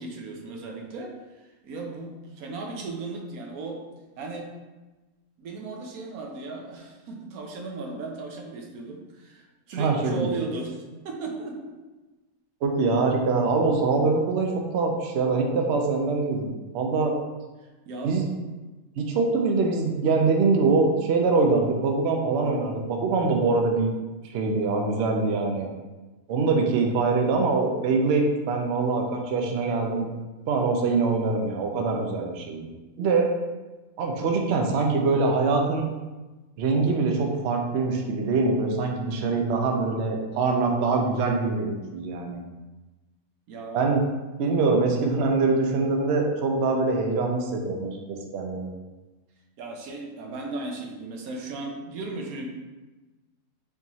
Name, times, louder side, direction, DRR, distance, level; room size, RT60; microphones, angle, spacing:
voice 1, 0.0-3.8 4.2-4.5 5.4-11.6 17.6-18.2 43.5-43.9 49.6-52.5, right 3 dB, 80° right, 1 dB, 1.1 m, -36 dB
voice 2, 9.8-10.3 12.6-17.1 18.0-18.3 19.0-23.9 24.2-25.7 26.3-30.1 30.5-33.3 34.0-35.9 36.6-42.4 43.7-44.0 44.4-48.0 48.3-48.7, right 3 dB, 65° right, 2 dB, 0.7 m, -24 dB
4.4 x 3.0 x 2.7 m, 1.2 s
omnidirectional pair, 1.5 m